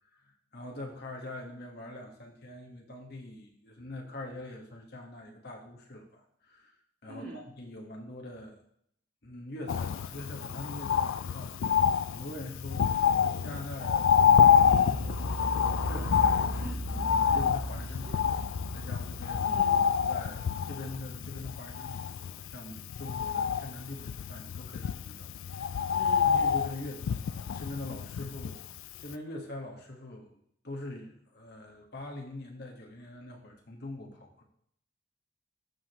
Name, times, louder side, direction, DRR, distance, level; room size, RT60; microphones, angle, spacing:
voice 1, 0.2-6.7 7.0-8.6 9.2-13.1 13.4-16.6 17.2-18.5 18.7-19.4 20.1-25.3 25.7-25.9 26.2-28.6 29.0-30.3 30.6-34.4, left 1 dB, 50° left, 0 dB, 1.6 m, -43 dB
voice 2, 7.0-7.4 16.5-17.4 17.8-18.2 19.4-19.9 25.9-26.4, right 1 dB, 40° right, -5 dB, 2.5 m, -45 dB
Bird, 9.7-28.8 29.1-29.2, left 7 dB, 75° left, 0.3 m, -27 dB
sound 1, 14.0-21.8, right 1 dB, 5° right, 0.5 m, -39 dB
13.0 x 5.0 x 3.1 m, 0.70 s
head